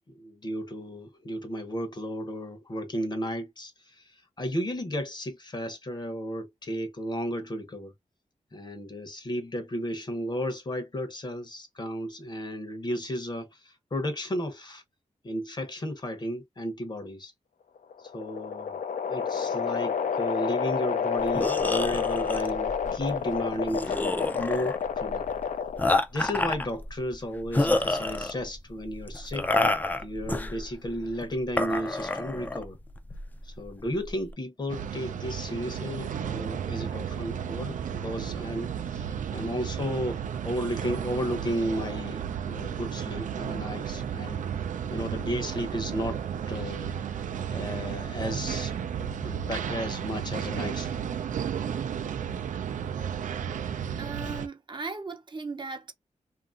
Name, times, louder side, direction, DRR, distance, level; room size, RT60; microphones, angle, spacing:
voice 1, 0.1-7.9 8.5-14.8 15.2-17.3 18.0-18.8 19.1-25.2 26.1-29.5 30.0-32.8 33.4-44.4 44.9-46.2 46.5-51.1, equal, 35° left, 0.8 m, -34 dB
sound 1, 17.8-26.0, left 6 dB, 90° left, 0.5 m, -29 dB
sound 2, 21.2-34.3, left 2 dB, 15° left, 0.3 m, -30 dB
sound 3, 34.7-54.5, right 8 dB, 80° right, 0.4 m, -33 dB
voice 2, 54.0-55.9, right 4 dB, 35° right, 0.6 m, -37 dB
2.9 x 2.5 x 2.4 m
wide cardioid pair, 120°, 13 cm